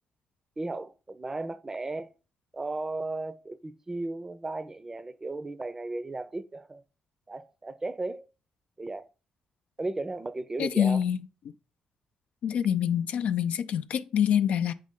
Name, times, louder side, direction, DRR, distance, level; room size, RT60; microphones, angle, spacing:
voice 1, 0.6-2.1 2.5-6.8 7.3-8.3 8.8-9.1 9.8-11.0, right 2 dB, 20° right, 0.5 m, -35 dB
voice 2, 10.6-11.2 12.4-14.7, left 9 dB, 70° left, 0.4 m, -26 dB
7.3 x 5.2 x 3.7 m
cardioid pair, 90°, 2 cm